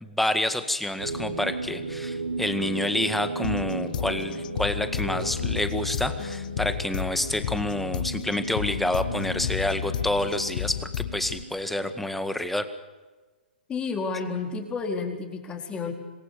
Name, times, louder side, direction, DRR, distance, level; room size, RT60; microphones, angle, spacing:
voice 1, 0.0-12.7, left 1 dB, 5° left, 10 dB, 1.8 m, -28 dB
sound 1, 1.0-12.1, right 3 dB, 80° right, 5.4 m, -36 dB
sound 2, 3.4-11.4, left 10 dB, 55° left, 0.9 m, -32 dB
voice 2, 13.7-15.9, left 4 dB, 20° left, 3 dB, 4.3 m, -31 dB
27.0 x 21.0 x 6.9 m, 1.3 s
figure-of-eight pair, 120°, 5 cm